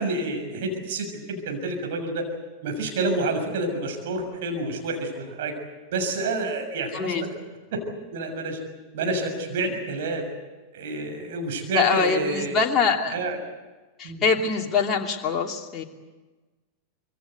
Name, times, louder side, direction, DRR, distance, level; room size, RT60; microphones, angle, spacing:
voice 1, 0.0-2.3 2.6-5.5 5.9-7.1 7.7-7.8 8.1-8.6 8.9-10.2 10.7-12.6 13.1-13.4 14.0-14.2, right 2 dB, 55° right, 4 dB, 6.8 m, -28 dB
voice 2, 6.9-7.3 11.7-13.1 14.0-15.8, left 5 dB, 25° left, 1 dB, 2.9 m, -24 dB
26.0 x 23.0 x 8.3 m, 1.2 s
figure-of-eight pair, 90°, 0 cm